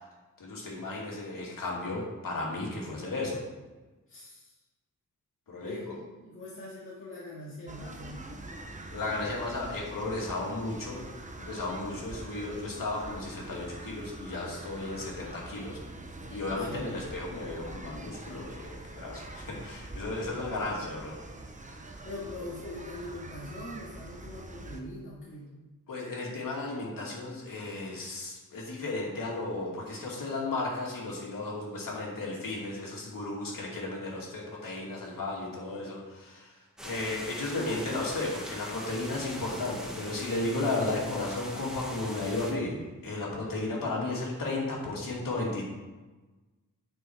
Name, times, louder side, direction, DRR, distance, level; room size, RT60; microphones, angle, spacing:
voice 1, 0.4-3.4 5.5-5.9 8.9-11.0 11.4-15.8 16.3-21.2 25.9-45.6, left 2 dB, 85° left, -3 dB, 2.6 m, -34 dB
voice 2, 4.1-4.6 5.6-8.2 16.6-16.9 22.0-25.5, left 1 dB, 40° left, -7 dB, 2.0 m, -42 dB
sound 1, 7.7-24.8, right 2 dB, 25° right, 0.8 m, -44 dB
sound 2, 36.8-42.5, equal, ahead, 1.5 m, -42 dB
9.5 x 6.2 x 4.7 m, 1.2 s
wide cardioid pair, 140°, 32 cm